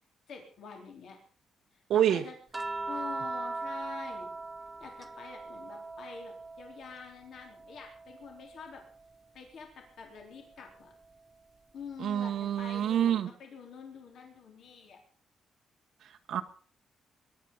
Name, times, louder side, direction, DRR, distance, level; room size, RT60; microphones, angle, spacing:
voice 1, 0.3-1.2 1.7-2.4 2.9-4.3 4.8-8.8 9.3-10.9 11.7-15.0, left 5 dB, 60° left, 2 dB, 3.8 m, -47 dB
voice 2, 1.9-2.2 12.0-13.3 16.0-16.4, right 10 dB, 65° right, 5 dB, 1.1 m, -27 dB
sound 1, 2.5-7.0 7.4-9.0 10.5-10.7, right 3 dB, 20° right, 0.8 m, -40 dB
22.0 x 11.0 x 5.5 m, 0.42 s
cardioid pair, 165°, 0 cm